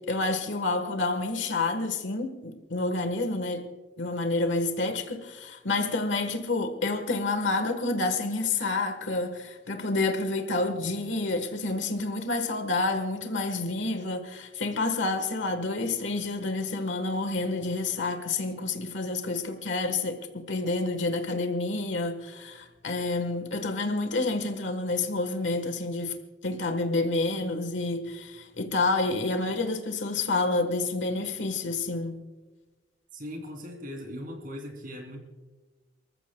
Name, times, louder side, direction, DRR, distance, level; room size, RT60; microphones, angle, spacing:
voice 1, 0.0-3.7 4.0-26.2 26.4-32.2, left 3 dB, 85° left, 1.3 m, -29 dB
voice 2, 33.1-35.2, equal, 50° right, 2.9 m, -39 dB
28.5 x 14.5 x 2.3 m
head